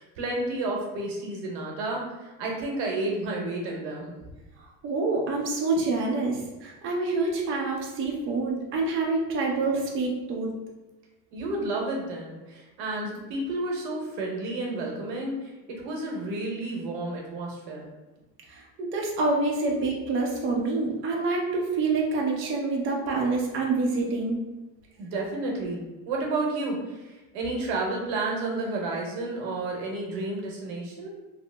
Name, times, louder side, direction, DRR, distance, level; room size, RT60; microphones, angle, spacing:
voice 1, 0.0-4.1 11.3-17.9 25.0-31.1, right 2 dB, 85° right, -1 dB, 0.9 m, -31 dB
voice 2, 4.8-10.5 18.5-24.4, right 3 dB, 35° right, -2 dB, 0.5 m, -27 dB
2.8 x 2.0 x 3.2 m, 1.1 s
cardioid pair, 135°, 35 cm